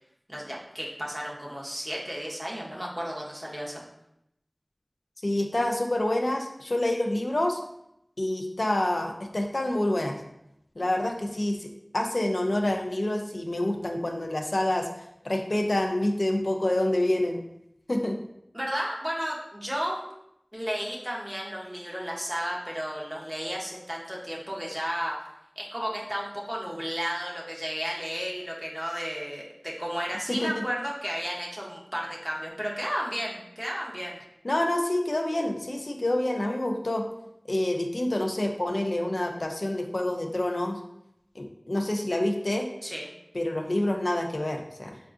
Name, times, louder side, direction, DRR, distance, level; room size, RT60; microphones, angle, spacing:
voice 1, 0.3-3.8 18.5-20.0 20.5-25.2 25.6-34.2 42.8-43.1, equal, 10° right, -3 dB, 0.7 m, -33 dB
voice 2, 5.2-7.6 8.2-10.2 10.8-14.9 15.2-17.4 17.9-18.2 30.3-30.6 34.4-37.1 37.5-40.8 41.4-42.7 43.3-45.0, left 1 dB, 80° left, 3 dB, 0.3 m, -27 dB
3.6 x 2.3 x 2.4 m, 0.80 s
wide cardioid pair, 40°, 0 cm